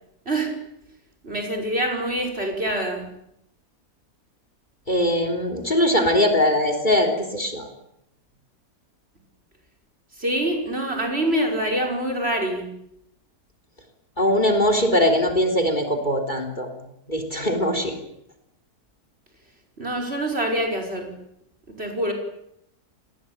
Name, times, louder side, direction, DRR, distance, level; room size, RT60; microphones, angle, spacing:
voice 1, 1.2-3.1 10.2-12.7 19.8-21.1 21.7-22.1, right 1 dB, 40° right, 4 dB, 6.0 m, -25 dB
voice 2, 4.9-7.7 14.2-16.7 17.1-17.9, left 1 dB, 30° left, 7 dB, 3.6 m, -21 dB
29.5 x 20.0 x 9.0 m, 0.78 s
omnidirectional pair, 1.7 m